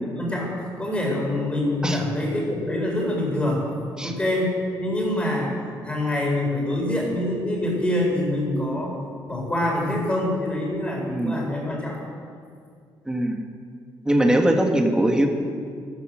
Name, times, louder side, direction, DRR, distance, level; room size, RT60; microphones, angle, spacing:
voice 1, 0.2-3.7 4.0-5.6 5.8-8.9 9.3-12.0, left 1 dB, 15° left, -2 dB, 4.2 m, -25 dB
voice 2, 13.1-13.4 14.0-15.3, right 1 dB, 10° right, 3 dB, 1.6 m, -21 dB
15.0 x 12.5 x 6.3 m, 2.2 s
cardioid pair, 140°, 9 cm